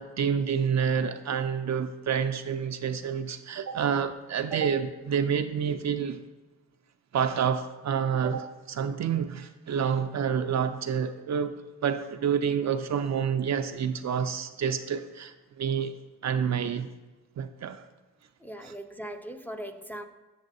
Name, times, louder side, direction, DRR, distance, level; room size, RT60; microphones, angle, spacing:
voice 1, 0.0-6.2 7.1-11.6 11.8-15.9 16.2-16.9 17.4-17.8 18.6-18.7, right 7 dB, 50° right, 9 dB, 0.4 m, -28 dB
voice 2, 18.4-20.1, right 1 dB, 5° left, 7 dB, 0.5 m, -39 dB
7.4 x 7.3 x 2.6 m, 1.2 s
supercardioid pair, 45°, 35 cm